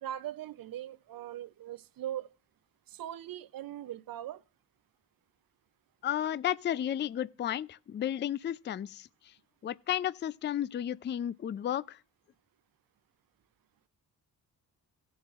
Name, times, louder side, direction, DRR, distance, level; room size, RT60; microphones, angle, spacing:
voice 1, 0.0-2.3 2.9-4.4, right 12 dB, 65° right, 0.6 m, -40 dB
voice 2, 6.0-9.3 9.6-12.0, left 10 dB, 30° left, 0.3 m, -33 dB
17.0 x 7.1 x 2.4 m
cardioid pair, 75°, 38 cm